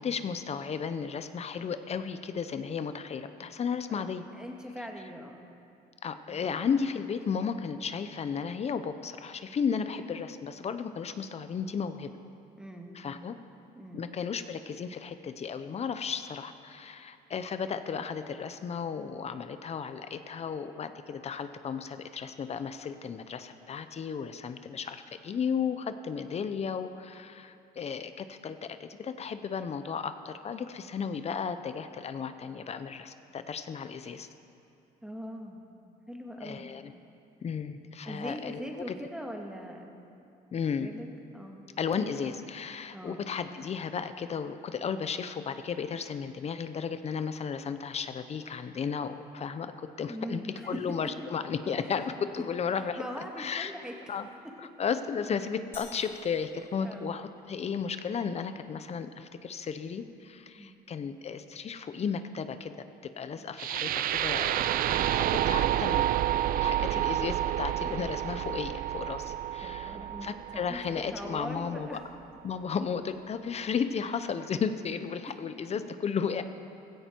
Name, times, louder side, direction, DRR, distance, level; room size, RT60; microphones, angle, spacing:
voice 1, 0.0-4.2 6.0-12.1 12.9-13.3 13.9-34.3 36.4-36.9 37.4-38.9 40.5-40.9 41.8-53.0 53.4-53.7 54.1-54.3 54.6-62.9 63.2-72.0 72.4-76.4, left 6 dB, 40° left, 10 dB, 0.8 m, -34 dB
voice 2, 4.3-5.4 6.3-6.4 12.6-12.9 13.7-14.0 35.0-35.6 36.1-36.7 38.0-39.8 40.8-41.1 41.3-41.6 42.9-43.2 50.1-50.8 53.0-53.9 56.8-57.1 60.6-60.8 63.4-63.5 69.6-70.8 71.1-72.0, equal, 5° right, 1 dB, 1.8 m, -41 dB
sound 1, 55.7-57.7, left 2 dB, 15° left, 2.6 m, -51 dB
sound 2, 63.6-71.6, right 12 dB, 60° right, 0.5 m, -29 dB
16.0 x 16.0 x 4.6 m, 2.6 s
cardioid pair, 110°, 17 cm